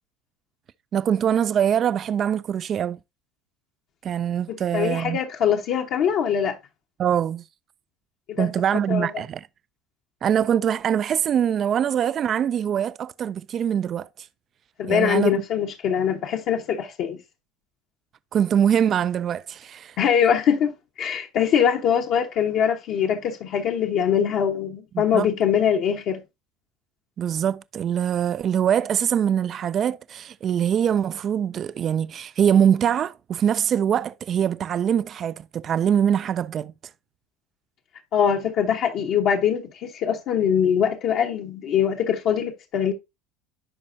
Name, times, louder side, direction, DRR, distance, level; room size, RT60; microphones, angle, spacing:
voice 1, 0.9-3.0 4.0-5.2 7.0-7.4 8.4-9.5 10.2-14.3 14.9-15.4 18.3-20.0 24.9-25.3 27.2-36.7, right 9 dB, 40° right, 0.3 m, -23 dB
voice 2, 4.5-6.6 8.3-8.5 8.9-9.1 14.8-17.2 20.0-26.2 38.1-42.9, left 8 dB, 55° left, 1.0 m, -23 dB
11.0 x 4.2 x 2.6 m
supercardioid pair, 105°, 0 cm